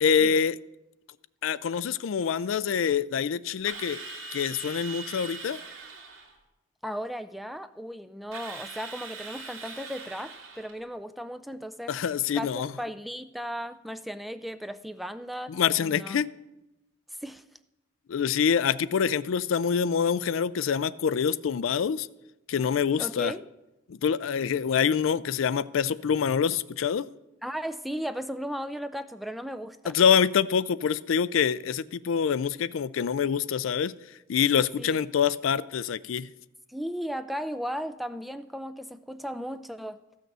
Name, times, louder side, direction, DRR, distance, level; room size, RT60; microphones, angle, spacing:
voice 1, 0.0-0.6 1.4-4.0 4.3-5.6 11.9-12.7 15.5-16.3 18.1-22.1 22.5-23.3 23.9-27.1 29.9-33.9 34.3-36.3, left 7 dB, 75° left, 0.4 m, -25 dB
Drill, 3.6-6.3 8.3-10.8, right 4 dB, 85° right, 2.3 m, -41 dB
voice 2, 6.8-12.0 12.3-16.2 17.2-17.4 23.0-23.4 27.4-29.9 34.8-35.0 36.7-40.0, equal, ahead, 0.3 m, -36 dB
14.5 x 6.4 x 6.8 m
head